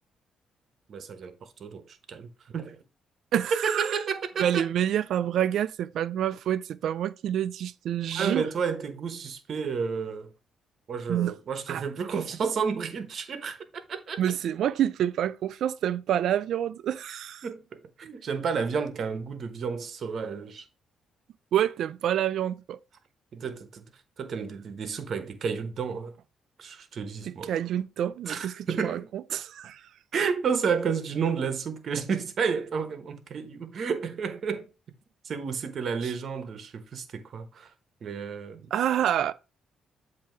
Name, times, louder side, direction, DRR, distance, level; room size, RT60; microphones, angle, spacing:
voice 1, 0.9-2.8 3.5-4.6 8.1-10.3 10.9-14.2 17.4-20.6 23.3-23.8 24.2-26.1 26.6-27.5 28.3-29.1 30.1-34.7 35.2-37.7 38.0-38.7, right 6 dB, 55° right, 1.0 m, -31 dB
voice 2, 3.3-4.0 4.4-8.4 11.1-11.3 11.7-11.8 14.2-17.4 21.5-22.8 27.2-29.8 36.0-36.1 38.7-39.3, right 10 dB, 75° right, 0.3 m, -28 dB
7.6 x 2.8 x 4.5 m
cardioid pair, 90°, 0 cm